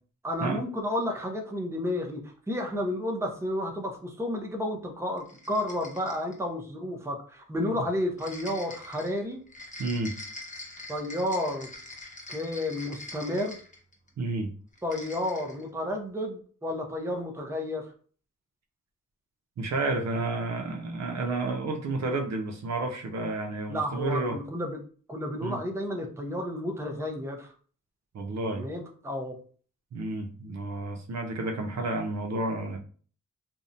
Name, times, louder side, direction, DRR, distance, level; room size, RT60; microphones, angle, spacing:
voice 1, 0.2-9.4 10.9-11.7 12.3-13.6 14.8-17.9 23.7-24.8 25.1-27.5 28.5-29.4, left 1 dB, 10° right, 2 dB, 0.6 m, -31 dB
sound 1, 5.2-6.4 8.2-14.1 14.7-15.6, left 2 dB, 25° left, 0.8 m, -44 dB
voice 2, 9.8-10.2 14.2-14.5 19.6-24.4 25.4-25.6 28.1-28.7 29.9-32.8, right 2 dB, 60° right, 3 dB, 0.5 m, -31 dB
2.6 x 2.0 x 2.6 m, 0.43 s
cardioid pair, 55°, 31 cm